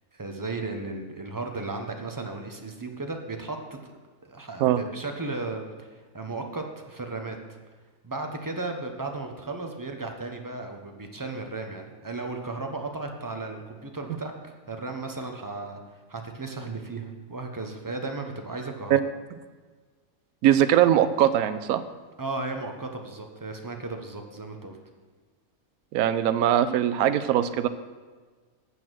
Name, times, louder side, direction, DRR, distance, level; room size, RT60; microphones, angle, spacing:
voice 1, 0.1-3.9 4.2-7.4 8.0-19.0 22.2-24.8, right 3 dB, 20° right, 4 dB, 0.6 m, -35 dB
voice 2, 20.4-21.8 25.9-27.7, right 11 dB, 80° right, 11 dB, 1.0 m, -21 dB
8.1 x 7.1 x 6.2 m, 1.4 s
omnidirectional pair, 1.5 m